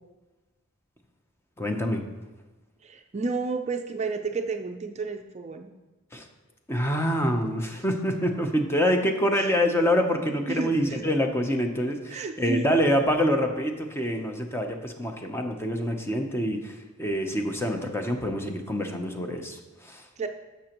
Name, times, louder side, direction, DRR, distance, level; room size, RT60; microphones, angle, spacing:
voice 1, 1.6-2.0 6.1-6.2 6.7-20.0, equal, 10° left, 4 dB, 0.7 m, -26 dB
voice 2, 2.8-5.7 9.3-9.6 10.5-11.0 12.1-12.8 20.2-20.3, right 3 dB, 35° right, 5 dB, 0.4 m, -31 dB
11.5 x 6.7 x 3.0 m, 1.2 s
head